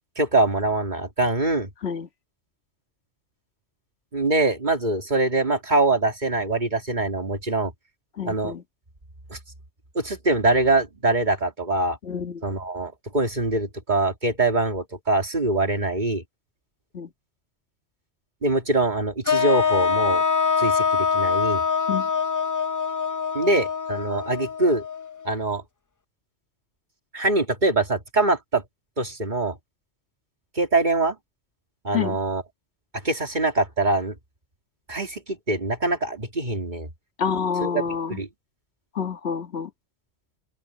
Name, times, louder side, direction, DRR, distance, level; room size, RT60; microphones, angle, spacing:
voice 1, 0.2-1.7 4.1-7.7 8.2-8.5 9.3-9.4 9.9-12.0 12.4-16.2 18.4-20.2 20.6-21.6 23.3-24.8 25.2-25.6 27.1-28.6 29.0-29.6 30.6-31.2 31.8-32.4 33.0-34.1 34.9-36.9 37.6-38.3, right 2 dB, 40° right, 2.7 m, -23 dB
voice 2, 8.2-8.6 12.0-12.4 16.9-17.1 21.9-22.1 31.9-32.2 37.2-38.2 39.0-39.7, left 6 dB, 65° left, 1.9 m, -28 dB
sound 1, 19.3-25.3, left 6 dB, 25° left, 0.4 m, -24 dB
open air
omnidirectional pair, 1.2 m